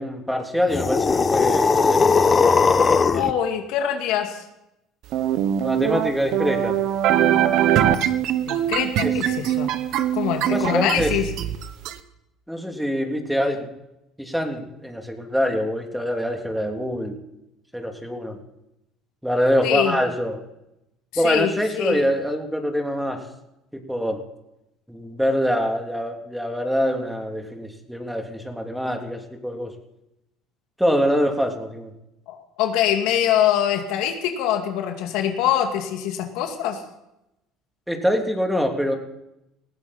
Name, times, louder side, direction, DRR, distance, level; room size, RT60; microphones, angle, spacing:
voice 1, 0.0-2.2 5.6-6.7 9.0-9.1 10.5-11.1 12.5-13.7 14.2-17.2 17.7-18.4 19.2-20.4 21.2-23.3 23.7-24.2 24.9-29.7 30.8-31.9 37.9-38.9, equal, ahead, 3 dB, 3.0 m, -24 dB
sound 1, 0.7-3.3, left 5 dB, 30° left, 1.3 m, -18 dB
voice 2, 3.1-4.5 8.4-9.7 10.1-11.3 19.6-20.0 21.1-22.0 32.3-36.8, left 10 dB, 75° left, 5 dB, 2.3 m, -24 dB
sound 2, 5.1-11.9, right 11 dB, 65° right, 1.2 m, -22 dB
19.5 x 15.5 x 4.3 m, 0.86 s
supercardioid pair, 95°, 0 cm